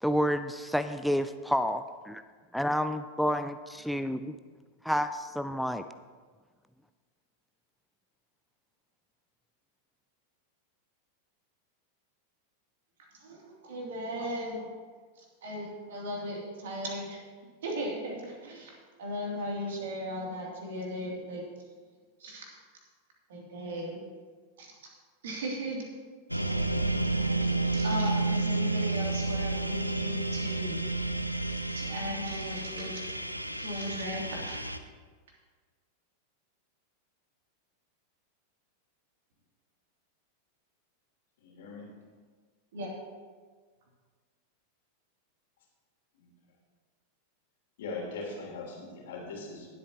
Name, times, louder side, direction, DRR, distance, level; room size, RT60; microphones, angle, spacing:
voice 1, 0.0-2.2 2.5-4.3 4.8-5.8, equal, ahead, 9 dB, 0.4 m, -29 dB
voice 2, 13.2-14.7 15.2-17.2 17.6-21.4 22.2-22.5 23.3-24.0 24.6-24.7 25.2-25.8 26.3-26.4 27.4-30.8 31.7-33.0 33.5-34.6 42.7-42.9, equal, 60° right, -2 dB, 2.9 m, -37 dB
sound 1, 26.3-34.8, right 2 dB, 90° right, 0.5 m, -31 dB
voice 3, 41.4-41.8 47.8-49.7, left 3 dB, 55° left, -1 dB, 3.1 m, -40 dB
19.0 x 8.3 x 3.0 m, 1.5 s
figure-of-eight pair, 90°, 0 cm